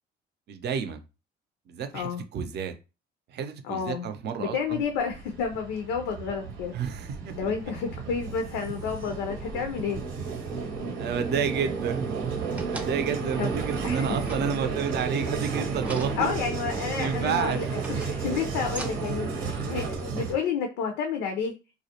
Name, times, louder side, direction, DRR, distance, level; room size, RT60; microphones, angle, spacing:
voice 1, 0.5-1.0 1.7-2.7 3.3-4.8 6.7-7.3 11.0-12.1 12.7-16.3 17.0-17.6, right 7 dB, 55° right, 8 dB, 0.5 m, -30 dB
voice 2, 3.6-4.1 4.4-6.7 7.3-10.0 13.4-13.5 13.8-14.1 16.2-21.5, left 6 dB, 90° left, 3 dB, 0.5 m, -30 dB
Vehicle, 4.7-20.3, right 5 dB, 85° right, 0.8 m, -33 dB
sound 1, 12.4-13.2 14.1-15.0 15.8-16.8 17.5-19.2 19.9-20.0, right 1 dB, 5° right, 0.6 m, -42 dB
2.3 x 2.0 x 2.8 m, 0.29 s
supercardioid pair, 75°, 20 cm